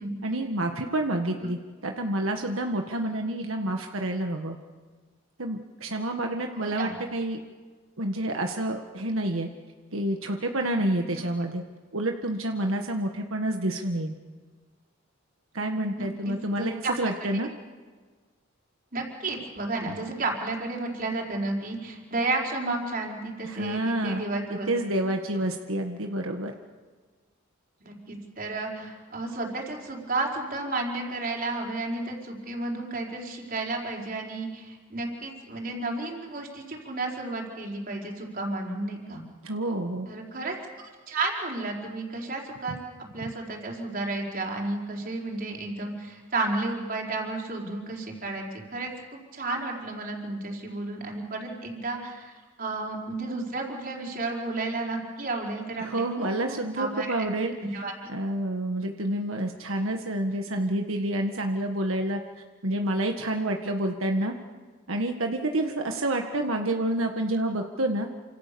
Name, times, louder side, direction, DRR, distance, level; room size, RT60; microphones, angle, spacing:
voice 1, 0.2-4.6 5.4-7.4 8.0-9.5 9.9-11.6 11.9-14.1 15.5-17.5 23.4-26.5 39.4-40.1 42.7-42.8 55.8-57.8 58.1-62.2 62.6-64.3 64.9-68.1, right 1 dB, 90° right, 3 dB, 1.8 m, -28 dB
voice 2, 6.5-6.9 16.0-16.9 18.9-24.7 27.8-39.2 40.1-42.8 43.1-48.4 48.7-52.3 52.6-57.1 57.7-57.9, right 2 dB, 45° right, 0 dB, 5.0 m, -32 dB
28.5 x 27.0 x 7.0 m, 1.4 s
head